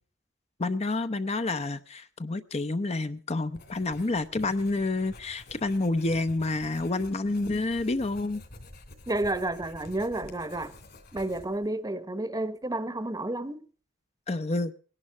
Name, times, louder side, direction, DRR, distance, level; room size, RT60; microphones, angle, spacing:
voice 1, 0.6-8.4 14.3-14.7, left 2 dB, 35° left, 0.7 m, -29 dB
Writing, 3.5-11.7, left 1 dB, 55° left, 3.0 m, -49 dB
voice 2, 9.1-10.7 11.1-13.6, right 2 dB, 20° right, 0.9 m, -31 dB
19.0 x 11.0 x 6.0 m
head